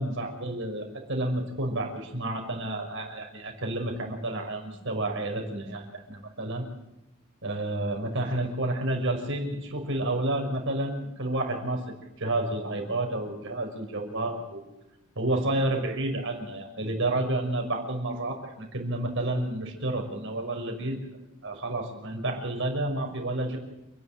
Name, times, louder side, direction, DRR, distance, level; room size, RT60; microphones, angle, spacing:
voice 1, 0.0-6.7 7.4-11.8 12.2-14.6 15.2-21.0 21.4-23.6, right 1 dB, 60° right, 2 dB, 5.6 m, -30 dB
28.5 x 11.0 x 8.9 m, 0.93 s
head